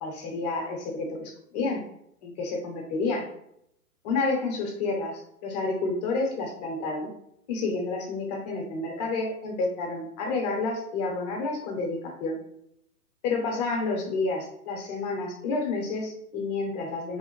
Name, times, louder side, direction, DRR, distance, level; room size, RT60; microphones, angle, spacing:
voice 1, 0.0-1.8 2.2-3.3 4.0-7.1 7.5-12.4 13.2-17.2, left 3 dB, 25° left, 1 dB, 0.8 m, -30 dB
3.5 x 2.1 x 3.0 m, 0.73 s
hypercardioid pair, 135°, 46 cm